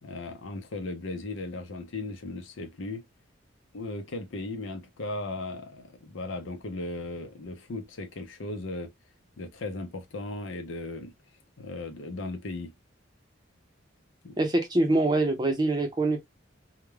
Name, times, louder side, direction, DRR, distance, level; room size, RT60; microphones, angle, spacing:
voice 1, 0.0-3.0 3.7-8.9 9.4-11.1 11.6-12.7 14.2-14.4, left 2 dB, 75° left, 0.7 m, -37 dB
voice 2, 14.4-16.3, right 2 dB, 20° right, 0.6 m, -24 dB
2.4 x 2.2 x 3.1 m
head